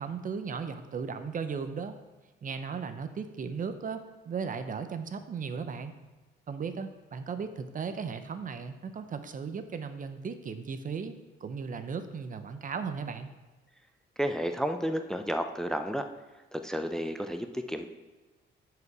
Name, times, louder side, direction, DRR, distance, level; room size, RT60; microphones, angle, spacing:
voice 1, 0.0-1.9 2.4-5.9 6.5-11.1 11.4-13.3, right 5 dB, 40° right, 9 dB, 0.7 m, -36 dB
voice 2, 14.2-16.0 16.5-17.8, equal, 5° left, 7 dB, 0.5 m, -31 dB
9.5 x 5.0 x 4.8 m, 1.2 s
cardioid pair, 90°, 20 cm